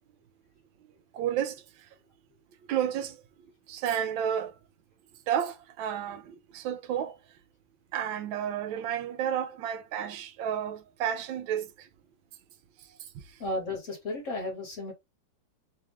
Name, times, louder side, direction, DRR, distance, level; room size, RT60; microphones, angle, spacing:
voice 1, 1.1-1.6 2.7-3.2 3.7-4.5 5.3-7.2 7.9-11.7, right 9 dB, 80° right, 1.4 m, -31 dB
voice 2, 13.4-14.9, left 2 dB, 45° left, 1.4 m, -34 dB
3.5 x 3.4 x 3.1 m
omnidirectional pair, 2.2 m